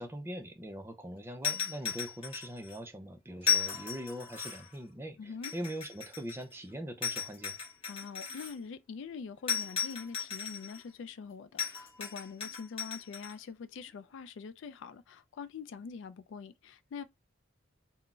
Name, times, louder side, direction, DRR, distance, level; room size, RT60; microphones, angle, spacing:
voice 1, 0.0-7.6, equal, 10° right, 0.3 m, -42 dB
sound 1, 1.4-2.8 3.4-4.7 5.4-6.5 7.0-8.5 9.5-10.8 11.6-13.3, left 8 dB, 30° left, 1.1 m, -35 dB
voice 2, 5.2-5.5 7.9-17.0, left 5 dB, 70° left, 0.3 m, -44 dB
3.7 x 2.0 x 2.3 m
head